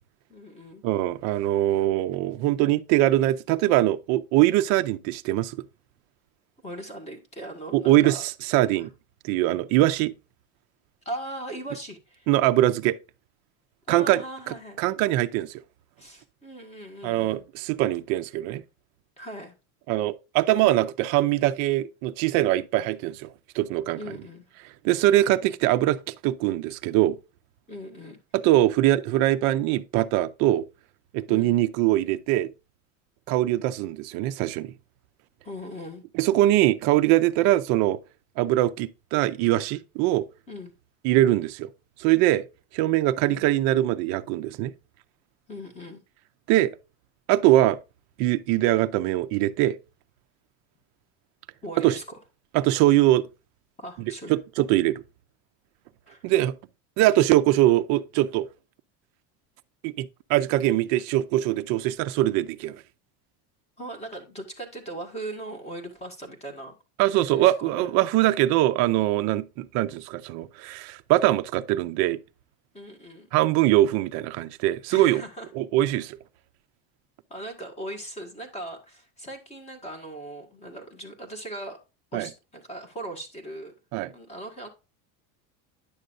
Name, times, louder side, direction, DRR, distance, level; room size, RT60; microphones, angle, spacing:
voice 1, 0.3-0.9 6.6-8.3 8.7-8.9 11.1-12.3 13.9-14.8 16.0-17.4 19.2-19.5 23.9-24.5 27.7-28.2 31.3-31.6 35.4-36.0 40.5-40.7 43.3-43.4 45.5-46.0 51.6-52.2 53.8-54.4 56.1-56.2 63.8-66.7 67.1-67.9 72.7-73.3 74.9-75.5 77.3-81.8 82.1-83.7 84.1-84.7, right 1 dB, 15° left, 1.7 m, -39 dB
voice 2, 0.8-5.6 7.7-8.9 9.2-10.1 12.3-13.0 13.9-14.2 14.5-15.6 17.0-18.6 19.9-24.0 24.8-26.0 26.2-27.2 28.4-30.6 31.1-32.5 33.3-34.7 36.1-38.0 38.4-40.3 41.0-41.7 42.0-42.4 42.7-44.7 46.5-46.7 47.3-47.8 48.2-49.8 51.8-52.0 52.5-53.3 54.0-55.0 56.2-56.5 57.0-58.5 59.8-62.8 67.0-72.2 73.3-75.2 75.5-76.2 82.1-82.3 83.9-84.1, right 15 dB, 40° right, 0.5 m, -22 dB
10.0 x 6.5 x 2.5 m
cardioid pair, 175°, 43 cm